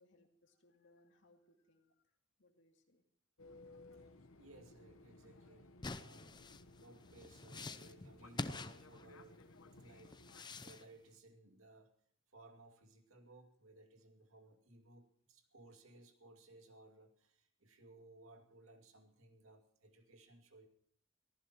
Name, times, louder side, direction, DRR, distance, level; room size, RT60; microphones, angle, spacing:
voice 1, 0.0-2.1 2.4-3.0, left 2 dB, 60° left, 4 dB, 2.4 m, -70 dB
Fixed-wing aircraft airplane, 3.4-10.4, left 2 dB, 90° left, 1.1 m, -60 dB
voice 2, 3.9-6.4 6.7-9.5 9.8-11.9 12.3-20.7, right 2 dB, 85° right, 5 dB, 2.4 m, -61 dB
sound 1, 5.8-9.4 10.0-10.8, left 3 dB, 20° left, 0.6 m, -46 dB
23.0 x 14.5 x 3.0 m, 0.66 s
head